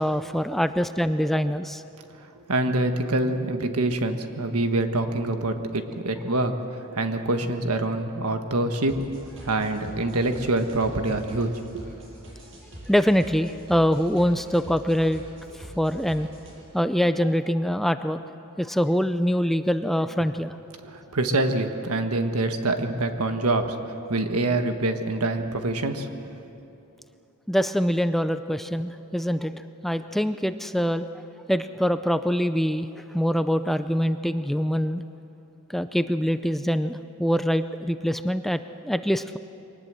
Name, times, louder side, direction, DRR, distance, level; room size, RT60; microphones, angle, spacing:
voice 1, 0.0-1.8 12.9-15.2 15.8-16.3 16.7-18.2 18.6-20.5 27.5-31.1 31.5-35.0 35.7-39.4, equal, ahead, 10 dB, 0.4 m, -24 dB
voice 2, 2.5-9.0 9.4-11.8 20.8-23.8 24.1-26.1, right 2 dB, 80° right, 6 dB, 1.5 m, -25 dB
sound 1, 8.9-16.5, right 1 dB, 60° right, 6.6 m, -44 dB
23.5 x 19.0 x 7.6 m, 3.0 s
head